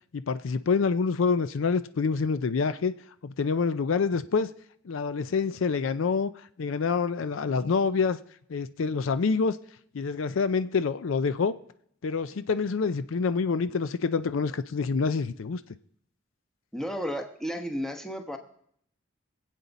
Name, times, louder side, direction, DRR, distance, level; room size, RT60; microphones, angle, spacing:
voice 1, 0.1-2.9 3.2-4.5 4.8-6.3 6.6-8.2 8.5-9.6 9.9-11.5 12.0-15.6, left 5 dB, 70° left, 0.5 m, -26 dB
voice 2, 16.7-18.4, equal, 5° left, 1.0 m, -33 dB
24.0 x 8.2 x 4.1 m
head